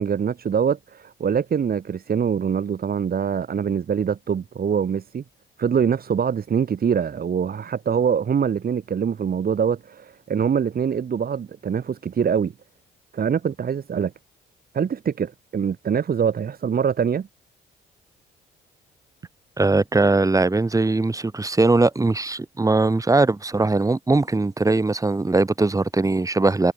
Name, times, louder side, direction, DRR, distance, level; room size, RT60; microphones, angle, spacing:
voice 1, 0.0-5.2 5.6-12.5 13.1-14.1 14.7-17.3, right 7 dB, 50° right, 4.0 m, -24 dB
voice 2, 19.6-26.7, right 3 dB, 15° right, 1.7 m, -20 dB
cardioid pair, 90°, 20 cm